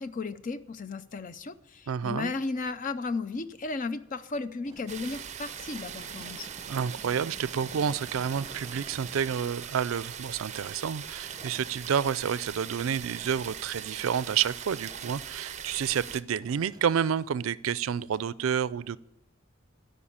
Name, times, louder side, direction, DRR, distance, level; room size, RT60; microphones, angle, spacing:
voice 1, 0.0-6.5, left 3 dB, 40° left, 12 dB, 0.5 m, -34 dB
voice 2, 1.9-2.3 6.7-19.0, right 7 dB, 90° right, 19 dB, 0.4 m, -29 dB
sound 1, 4.6-14.3 14.6-16.0 16.3-17.7 18.0-18.3, right 2 dB, 20° right, 0.8 m, -52 dB
sound 2, 4.9-16.2, right 8 dB, 35° right, 0.5 m, -41 dB
13.0 x 5.4 x 8.6 m, 0.87 s
head